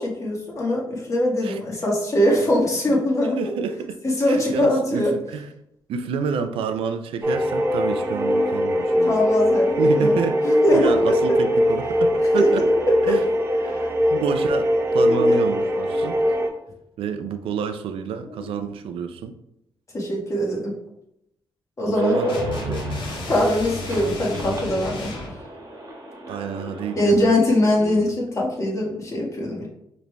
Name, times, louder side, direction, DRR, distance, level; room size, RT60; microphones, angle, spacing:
voice 1, 0.0-3.4 4.0-5.1 9.0-10.1 10.4-11.4 12.4-12.5 13.1-13.2 13.7-13.9 15.1-15.5 18.3-18.5 19.9-20.7 21.8-22.4 23.3-25.2 27.0-29.7, left 1 dB, 35° left, -3 dB, 1.4 m, -22 dB
voice 2, 3.4-4.0 4.2-5.5 5.9-9.2 9.8-10.4 10.7-12.6 13.0-13.3 13.6-13.8 14.1-16.3 17.0-19.3 21.8-22.3 22.6-22.8 26.3-27.4 27.8-28.1, right 6 dB, 80° right, 9 dB, 0.4 m, -29 dB
sound 1, 7.2-16.5, equal, 25° right, 0.8 m, -21 dB
sound 2, 21.9-27.2, right 1 dB, 40° right, 1.2 m, -32 dB
sound 3, 22.3-25.4, left 2 dB, 60° left, 1.1 m, -32 dB
4.9 x 3.2 x 2.3 m, 0.80 s
cardioid pair, 70°, 9 cm